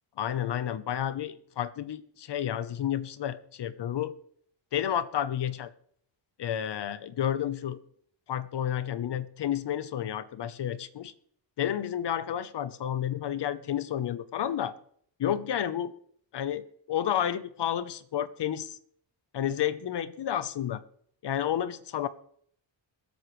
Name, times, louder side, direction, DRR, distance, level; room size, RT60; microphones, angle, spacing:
voice 1, 0.2-4.1 4.7-5.7 6.4-7.8 8.3-11.1 11.6-14.7 15.2-15.9 16.3-18.8 19.3-20.8 21.2-22.1, left 10 dB, 60° left, 1.0 m, -31 dB
22.5 x 8.1 x 3.2 m
cardioid pair, 95°, 47 cm